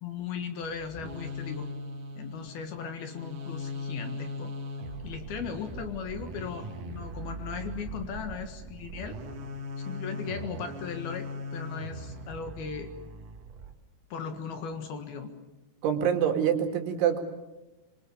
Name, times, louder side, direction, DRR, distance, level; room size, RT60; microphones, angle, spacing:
voice 1, 0.0-1.7 2.2-4.5 5.0-9.2 9.8-12.9 14.1-15.3, left 6 dB, 60° left, 7 dB, 3.0 m, -37 dB
sound 1, 0.6-13.7, left 1 dB, 50° right, 3.1 m, -39 dB
voice 2, 15.8-17.2, right 8 dB, 70° right, 5 dB, 4.6 m, -25 dB
26.0 x 24.5 x 7.2 m, 1.0 s
omnidirectional pair, 5.8 m